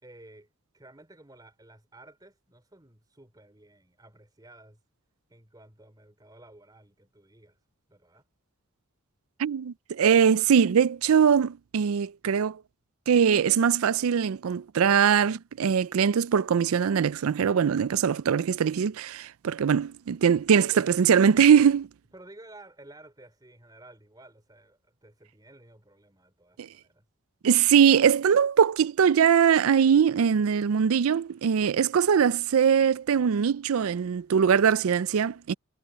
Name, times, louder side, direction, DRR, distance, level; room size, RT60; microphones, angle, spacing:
voice 1, 0.0-0.5 0.7-4.8 5.3-7.6 7.9-8.3 20.7-20.9 22.1-27.0, right 1 dB, 20° right, 3.5 m, -53 dB
voice 2, 9.4-12.6 13.1-21.9 26.6-26.7 27.4-35.5, right 7 dB, 75° right, 0.4 m, -22 dB
head